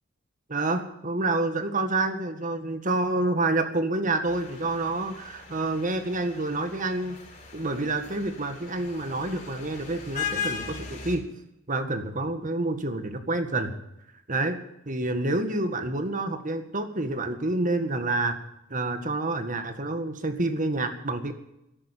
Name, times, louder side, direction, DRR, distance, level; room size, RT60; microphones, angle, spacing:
voice 1, 0.5-7.2 7.5-11.2 11.7-13.8 14.3-14.6 14.9-18.4 18.7-21.3, right 2 dB, 40° right, 8 dB, 1.8 m, -28 dB
sound 1, 4.3-11.2, left 6 dB, 40° left, 4.1 m, -38 dB
13.0 x 11.0 x 9.0 m, 0.84 s
head